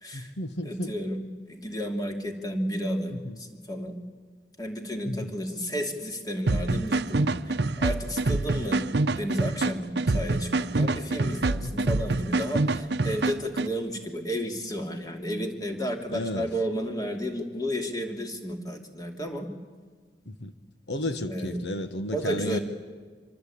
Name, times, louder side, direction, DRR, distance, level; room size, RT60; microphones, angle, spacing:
voice 1, 0.1-0.9 3.1-3.4 5.0-5.3 11.6-11.9 16.1-16.5 20.3-20.5 20.9-22.6, left 1 dB, 80° left, 9 dB, 1.3 m, -33 dB
voice 2, 0.6-1.2 1.5-4.0 4.6-8.9 9.2-19.5 21.2-21.6 22.1-22.6, equal, 20° left, 3 dB, 2.7 m, -32 dB
sound 1, 6.5-13.7, right 2 dB, 70° right, 0.8 m, -26 dB
26.5 x 24.5 x 8.6 m, 1.5 s
head